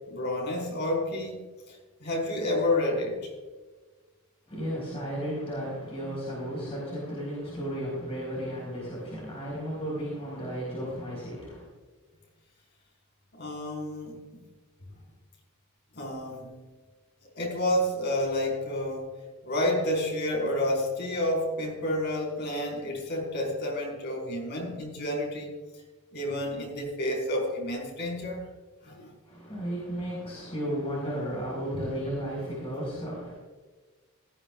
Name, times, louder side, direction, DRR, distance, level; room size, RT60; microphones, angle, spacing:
voice 1, 0.1-1.4 1.7-3.3 13.3-14.2 15.9-16.6 17.4-19.1 19.4-25.5 26.1-28.4 28.8-29.1 31.7-31.8, left 1 dB, 50° left, 0 dB, 4.8 m, -30 dB
voice 2, 4.5-11.6 29.3-33.3, equal, 30° left, -5 dB, 4.7 m, -34 dB
18.0 x 14.5 x 2.4 m, 1.3 s
head